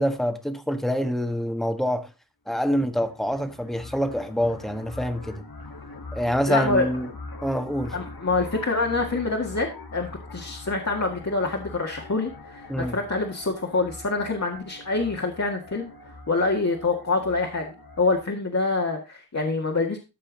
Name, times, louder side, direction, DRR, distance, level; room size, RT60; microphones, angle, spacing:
voice 1, 0.0-2.1 2.5-5.4 6.1-7.1 7.4-8.0 12.7-13.0, equal, ahead, 1.4 m, -26 dB
sound 1, 2.7-18.3, left 2 dB, 75° left, 2.2 m, -42 dB
voice 2, 6.5-6.9 7.9-15.9 16.3-20.0, left 3 dB, 45° left, 1.9 m, -26 dB
13.5 x 5.6 x 4.0 m
wide cardioid pair, 80°, 36 cm